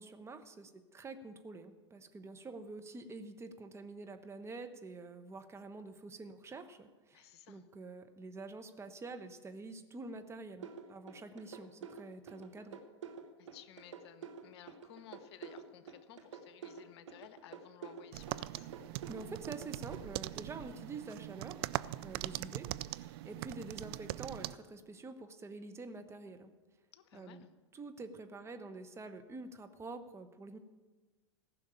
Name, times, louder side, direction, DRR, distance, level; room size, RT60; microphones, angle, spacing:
voice 1, 0.0-12.8 19.1-21.6 22.0-26.5 27.1-27.4 27.7-30.6, right 3 dB, 15° right, 7 dB, 1.0 m, -47 dB
voice 2, 7.1-7.6 13.4-18.7 26.9-27.5, left 10 dB, 60° left, 13 dB, 0.9 m, -56 dB
sound 1, 10.6-20.0, right 7 dB, 80° right, 1.4 m, -48 dB
sound 2, 18.1-24.6, right 17 dB, 55° right, 0.4 m, -41 dB
15.0 x 6.3 x 8.9 m, 1.3 s
hypercardioid pair, 100°, 15 cm